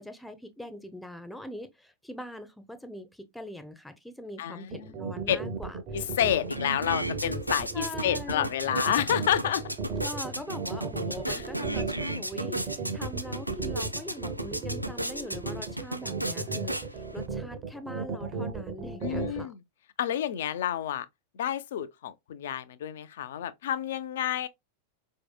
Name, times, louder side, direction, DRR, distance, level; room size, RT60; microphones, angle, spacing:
voice 1, 0.0-6.1 7.7-8.5 10.0-19.5, left 1 dB, 5° left, 0.6 m, -42 dB
voice 2, 4.4-4.9 5.3-5.4 5.9-9.6 11.3-11.4 19.0-19.6 20.0-21.1 21.3-24.5, left 10 dB, 60° left, 0.4 m, -29 dB
sound 1, 4.7-19.4, right 4 dB, 40° right, 0.7 m, -35 dB
sound 2, 6.0-6.1 6.3-17.3, right 1 dB, 90° right, 0.3 m, -35 dB
4.5 x 2.7 x 2.2 m
figure-of-eight pair, 90°, 0 cm